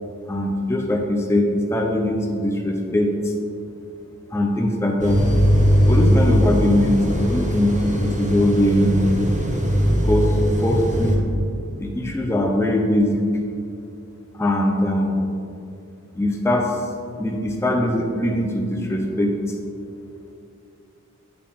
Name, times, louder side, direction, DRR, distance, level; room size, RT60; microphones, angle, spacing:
voice 1, 0.3-3.3 4.3-5.2 5.9-7.7 8.0-9.1 9.9-11.2 11.8-13.3 14.3-15.2 16.1-16.9 17.2-19.6, left 1 dB, 10° left, 1 dB, 0.7 m, -21 dB
sound 1, 5.0-11.2, equal, 25° right, 1.1 m, -19 dB
8.7 x 4.9 x 3.6 m, 2.5 s
wide cardioid pair, 50°, 30 cm